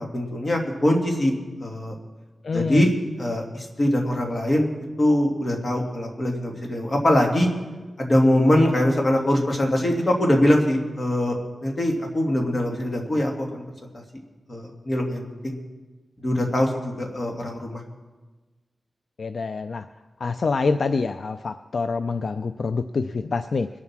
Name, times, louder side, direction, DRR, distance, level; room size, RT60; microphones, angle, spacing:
voice 1, 0.1-1.3 1.6-1.9 2.5-2.9 3.2-4.7 5.0-7.5 8.0-11.4 11.6-13.6 14.5-15.6 16.2-17.8, left 1 dB, 40° left, 1 dB, 2.4 m, -22 dB
voice 2, 2.4-2.8 19.2-19.9 20.2-23.7, left 4 dB, 70° left, 10 dB, 0.4 m, -26 dB
21.5 x 7.4 x 6.1 m, 1.3 s
wide cardioid pair, 80°, 0 cm